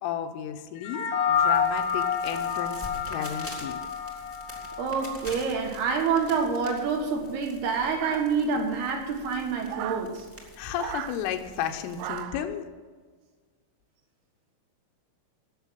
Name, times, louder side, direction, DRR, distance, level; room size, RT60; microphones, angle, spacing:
voice 1, 0.0-3.8 10.6-12.7, left 9 dB, 85° left, 6 dB, 3.5 m, -33 dB
sound 1, 0.8-5.4, left 7 dB, 60° left, 2.2 m, -28 dB
sound 2, 1.3-12.2, left 1 dB, 5° right, 0.9 m, -46 dB
voice 2, 4.8-10.3, right 5 dB, 65° right, 3 dB, 3.1 m, -27 dB
sound 3, 8.0-8.7 9.7-10.1 10.8-11.2 12.0-12.5, right 12 dB, 80° right, 2.7 m, -36 dB
17.5 x 7.0 x 7.5 m, 1.5 s
omnidirectional pair, 5.7 m